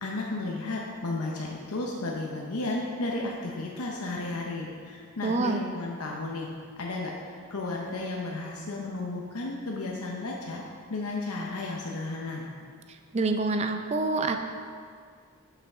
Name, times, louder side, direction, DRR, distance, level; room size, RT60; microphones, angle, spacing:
voice 1, 0.0-6.5 6.8-10.6 10.9-12.5, left 2 dB, 85° left, -2 dB, 0.8 m, -33 dB
voice 2, 5.2-5.6 13.1-14.4, right 3 dB, 30° right, 6 dB, 0.5 m, -26 dB
11.5 x 5.7 x 3.6 m, 2.1 s
head